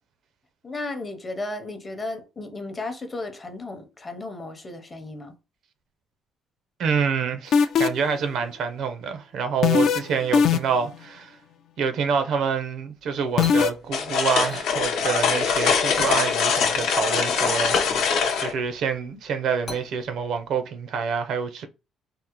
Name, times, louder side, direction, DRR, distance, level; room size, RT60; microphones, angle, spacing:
voice 1, 0.6-5.3, left 2 dB, 25° left, 0.6 m, -34 dB
voice 2, 6.8-11.4 11.8-18.1 18.4-21.7, right 6 dB, 65° right, 0.5 m, -27 dB
sound 1, 7.5-8.1 9.6-10.0 10.3-10.9 13.4-13.7, left 7 dB, 60° left, 0.3 m, -18 dB
sound 2, 13.0-15.5 15.8-20.5, left 3 dB, 40° left, 0.9 m, -36 dB
sound 3, 13.6-18.5, left 6 dB, 80° left, 0.8 m, -23 dB
3.5 x 2.0 x 2.8 m
cardioid pair, 125°, 0 cm